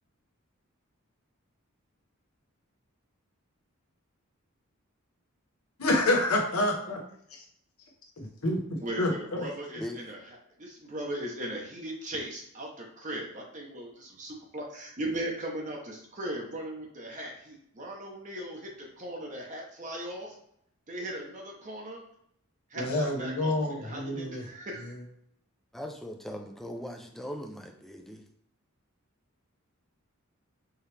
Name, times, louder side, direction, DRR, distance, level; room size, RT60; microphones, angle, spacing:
voice 1, 5.8-7.0 8.4-8.6 9.0-9.5 22.7-24.4 24.9-25.0, left 1 dB, 85° left, 0 dB, 1.1 m, -27 dB
voice 2, 8.8-10.2 10.6-20.3 20.9-22.0 22.7-25.0, right 1 dB, 35° right, -1 dB, 0.8 m, -38 dB
voice 3, 25.7-28.3, equal, ahead, 3 dB, 0.5 m, -40 dB
4.7 x 3.0 x 3.3 m, 0.71 s
head